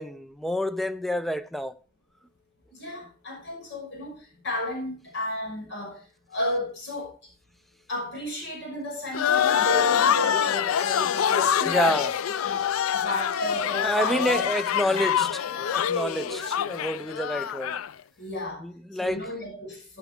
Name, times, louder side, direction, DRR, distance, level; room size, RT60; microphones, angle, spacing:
voice 1, 0.0-1.8 11.7-12.2 13.8-17.8 18.6-19.2, equal, ahead, 0.5 m, -28 dB
voice 2, 2.7-6.0 6.3-7.1 7.9-12.0 12.4-14.4 14.8-15.2 16.2-16.5 18.2-18.7 18.9-20.0, left 1 dB, 60° left, 5.9 m, -33 dB
sound 1, 9.1-17.9, left 9 dB, 80° left, 0.4 m, -25 dB
13.5 x 8.1 x 3.5 m
head